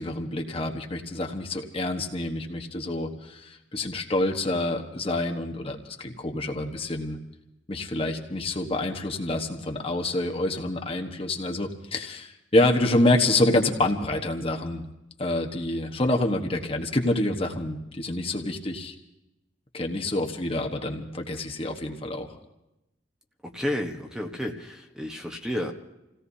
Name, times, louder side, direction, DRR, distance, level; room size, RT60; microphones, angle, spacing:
voice 1, 0.0-7.2 7.7-14.8 15.2-18.9 19.7-22.3, left 2 dB, 30° left, 2 dB, 1.3 m, -27 dB
voice 2, 23.5-25.7, left 1 dB, 5° right, 2 dB, 1.2 m, -31 dB
29.0 x 17.0 x 2.8 m, 0.91 s
head